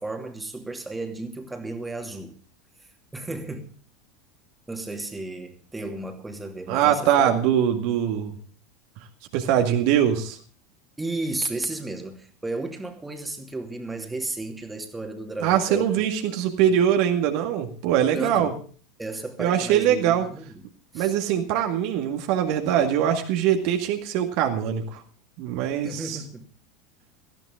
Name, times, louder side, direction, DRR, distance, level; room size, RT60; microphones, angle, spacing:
voice 1, 0.0-2.3 3.1-3.7 4.7-7.4 11.0-15.9 18.0-18.6 19.0-20.6 20.9-21.1 25.8-26.4, right 2 dB, 10° right, 2.6 m, -33 dB
voice 2, 6.7-8.3 9.3-10.4 15.4-18.5 19.4-20.2 20.9-25.0 25.4-26.2, right 9 dB, 50° right, 2.0 m, -22 dB
18.0 x 15.0 x 3.7 m
figure-of-eight pair, 80°, 0 cm